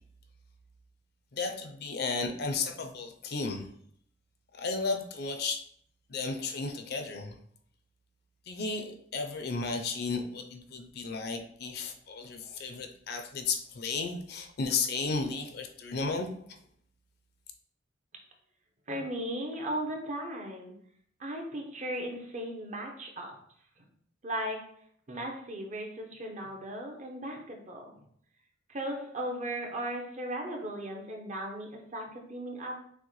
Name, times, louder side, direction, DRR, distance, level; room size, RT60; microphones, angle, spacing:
voice 1, 1.3-3.7 4.5-5.6 6.1-7.4 8.5-16.3, left 4 dB, 55° left, 5 dB, 0.5 m, -34 dB
voice 2, 18.9-20.7 21.2-23.3 24.2-24.6 25.1-27.9 28.7-32.8, right 1 dB, 35° right, 1 dB, 0.7 m, -36 dB
6.1 x 2.1 x 3.1 m, 0.65 s
head